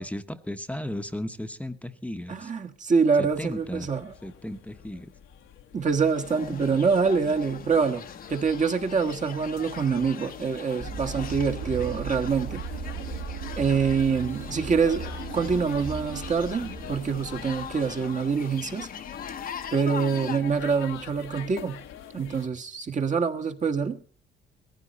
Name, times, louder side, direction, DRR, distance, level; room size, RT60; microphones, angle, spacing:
voice 1, 0.0-2.5 3.2-3.9 4.2-5.1, left 1 dB, 5° left, 1.0 m, -35 dB
voice 2, 2.3-4.1 5.7-8.0 8.3-12.6 13.6-18.9 19.7-21.8 22.1-24.0, right 5 dB, 40° right, 1.5 m, -25 dB
sound 1, 3.2-22.5, left 10 dB, 85° left, 1.3 m, -46 dB
sound 2, 6.1-20.4, left 7 dB, 45° left, 0.9 m, -41 dB
sound 3, 10.8-18.2, right 5 dB, 75° right, 3.1 m, -37 dB
18.0 x 15.0 x 4.1 m
cardioid pair, 90°, 20 cm